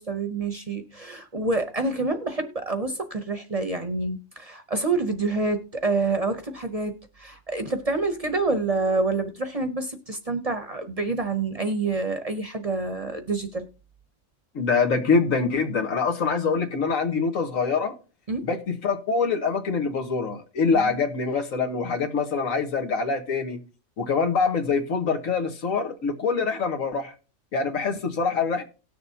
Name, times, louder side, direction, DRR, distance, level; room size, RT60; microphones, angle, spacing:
voice 1, 0.0-13.7 18.3-18.5 20.7-21.0, right 3 dB, 35° right, 0.7 m, -27 dB
voice 2, 14.6-17.9 18.4-23.6 24.0-27.1 27.5-28.6, left 5 dB, 85° left, 1.7 m, -24 dB
18.0 x 6.7 x 2.7 m
omnidirectional pair, 1.3 m